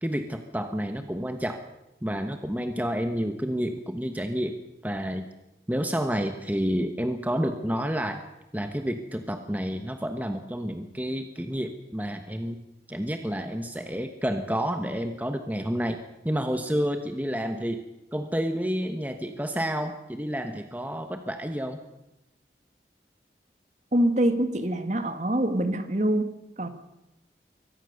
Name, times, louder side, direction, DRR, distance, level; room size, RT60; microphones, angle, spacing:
voice 1, 0.0-1.6 2.0-4.6 4.8-5.3 5.7-8.2 8.5-12.6 12.9-16.0 16.2-17.8 18.1-21.8, equal, 10° right, 6 dB, 1.1 m, -29 dB
voice 2, 23.9-26.7, right 1 dB, 40° right, 9 dB, 1.7 m, -25 dB
23.5 x 17.5 x 6.6 m, 0.93 s
head